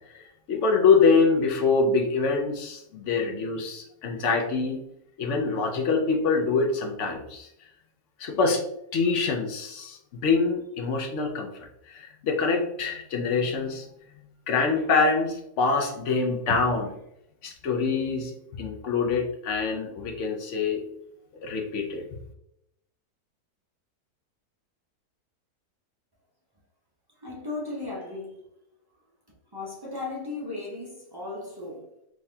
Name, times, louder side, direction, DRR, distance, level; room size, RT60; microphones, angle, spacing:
voice 1, 0.5-4.8 5.2-7.5 8.2-8.6 8.9-11.5 11.9-13.9 14.5-16.9 17.4-18.3 18.6-20.8 21.4-22.0, left 4 dB, 60° left, 0.8 m, -25 dB
voice 2, 27.2-28.4 29.5-31.9, left 3 dB, 30° right, 0.4 m, -36 dB
3.6 x 3.3 x 2.7 m
omnidirectional pair, 1.6 m